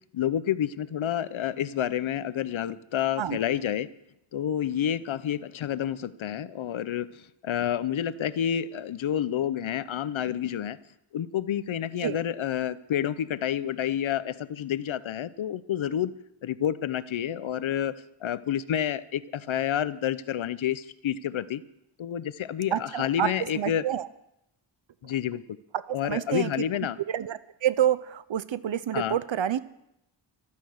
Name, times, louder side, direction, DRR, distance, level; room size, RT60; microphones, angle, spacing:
voice 1, 0.1-3.9 4.3-10.8 11.1-16.1 16.4-18.0 18.2-21.6 22.0-23.8 25.0-25.4 25.9-27.0 28.9-29.2, left 10 dB, 75° left, 16 dB, 0.7 m, -29 dB
voice 2, 22.7-24.1 25.7-26.6 27.1-29.6, right 10 dB, 70° right, 16 dB, 0.8 m, -28 dB
15.0 x 12.5 x 6.5 m, 0.82 s
wide cardioid pair, 130°, 48 cm